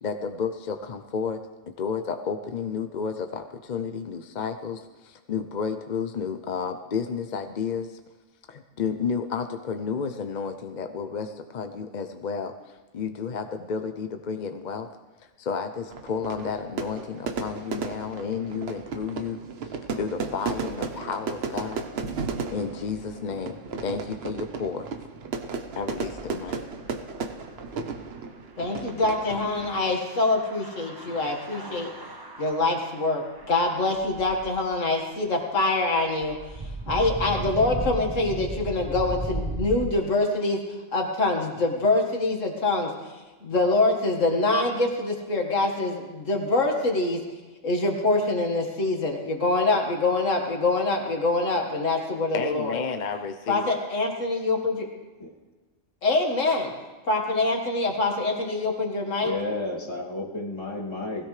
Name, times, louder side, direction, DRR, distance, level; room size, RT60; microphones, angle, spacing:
voice 1, 0.0-8.0 8.5-14.9 15.4-19.4 20.0-21.8 22.5-24.9 25.8-26.6 52.3-53.8, left 6 dB, 45° left, 7 dB, 0.6 m, -31 dB
Fire / Fireworks, 15.9-29.9, right 4 dB, 55° right, 1.1 m, -34 dB
sound 1, 25.7-27.8 28.7-34.7 36.2-39.9, right 2 dB, 20° right, 0.8 m, -36 dB
voice 2, 28.6-31.9 32.4-36.4 36.9-40.6 40.9-42.9 43.4-47.2 47.6-52.8 53.5-54.9 56.0-56.7 57.1-59.3, left 2 dB, 80° left, 2 dB, 2.1 m, -25 dB
voice 3, 59.2-61.3, left 2 dB, 20° left, -4 dB, 2.5 m, -32 dB
20.5 x 16.5 x 3.3 m, 1.2 s
omnidirectional pair, 1.3 m